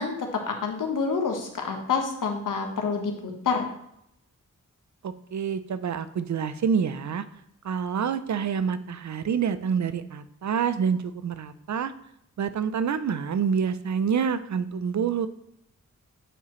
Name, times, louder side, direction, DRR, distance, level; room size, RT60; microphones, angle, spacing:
voice 1, 0.0-3.6, left 5 dB, 80° left, 3 dB, 1.3 m, -28 dB
voice 2, 5.0-7.2 7.6-11.9 12.4-15.3, right 7 dB, 65° right, 13 dB, 0.5 m, -27 dB
8.8 x 4.7 x 3.1 m, 0.75 s
wide cardioid pair, 75°, 31 cm